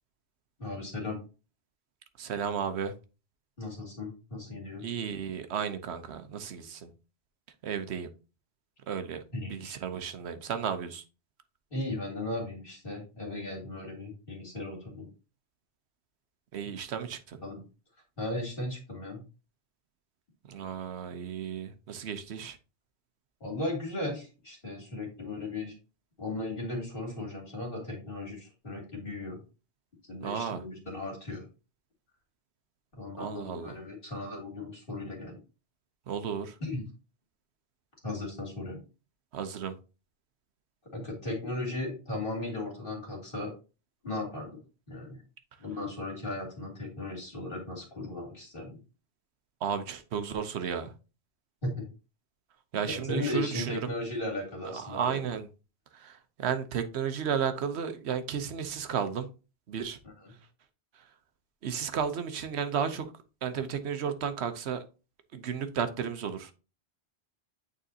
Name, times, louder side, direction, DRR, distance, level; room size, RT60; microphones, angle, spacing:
voice 1, 0.6-1.2 3.6-4.9 9.3-9.7 11.7-15.1 17.4-17.6 18.2-19.2 23.4-25.7 26.2-29.4 30.1-31.5 33.0-35.4 36.6-36.9 38.0-38.8 40.9-43.5 44.0-44.5 44.9-45.2 45.6-48.8 51.6-51.9 53.0-55.2 60.0-60.3, left 2 dB, 55° left, 2.6 m, -36 dB
voice 2, 2.2-2.9 4.8-6.9 7.6-8.1 8.9-9.2 9.5-11.0 16.5-17.4 20.5-22.6 30.2-30.6 33.2-33.8 36.1-36.6 39.3-39.8 49.6-50.9 52.7-53.9 54.6-55.5 55.9-59.3 59.7-60.0 61.6-63.1 63.4-64.8 65.3-66.5, right 7 dB, 85° right, 1.0 m, -33 dB
8.9 x 4.0 x 2.7 m
omnidirectional pair, 1.1 m